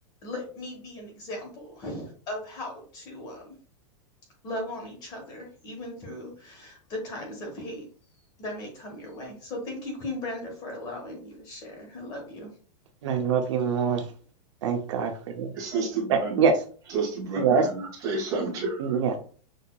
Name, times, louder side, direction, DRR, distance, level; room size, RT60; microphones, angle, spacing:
voice 1, 0.2-3.5 4.4-7.9 8.4-12.5, left 1 dB, 25° left, 1 dB, 1.2 m, -37 dB
voice 2, 13.0-14.0 14.6-15.5 16.1-16.5 17.4-17.7 18.8-19.2, right 6 dB, 60° right, 4 dB, 0.7 m, -24 dB
voice 3, 15.5-16.4 16.9-19.0, right 4 dB, 20° right, -2 dB, 1.4 m, -30 dB
6.3 x 2.7 x 2.3 m, 0.42 s
supercardioid pair, 180°, 17 cm